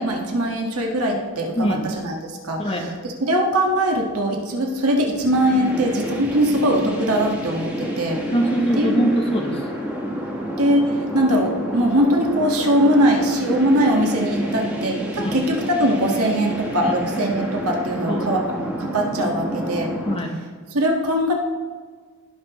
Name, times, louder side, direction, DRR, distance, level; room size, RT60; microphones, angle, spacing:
voice 1, 0.0-1.6 2.0-2.1 2.4-2.7 3.2-8.2 8.8-9.0 10.6-19.9 20.7-21.3, equal, 90° right, 1 dB, 1.6 m, -21 dB
voice 2, 1.5-1.9 2.6-2.9 8.3-9.7 15.2-15.4 16.8-16.9 18.1-18.4 20.0-20.3, equal, 25° left, 2 dB, 1.0 m, -23 dB
sound 1, 5.2-20.1, equal, 5° right, 1.2 m, -29 dB
17.0 x 5.9 x 3.1 m, 1.6 s
head